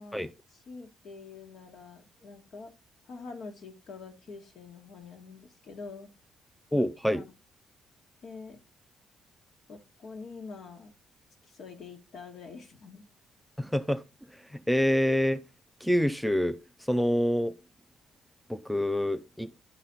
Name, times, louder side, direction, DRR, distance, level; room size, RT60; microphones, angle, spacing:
voice 1, 0.0-2.7 3.1-6.1 7.1-7.3 8.2-8.6 9.7-10.9 11.5-13.0, left 4 dB, 65° left, 1.7 m, -45 dB
voice 2, 6.7-7.2 13.6-14.0 14.5-15.4 15.8-16.6 16.9-17.6 18.5-19.5, equal, ahead, 0.5 m, -26 dB
11.0 x 4.2 x 3.9 m
cardioid pair, 90°, 0 cm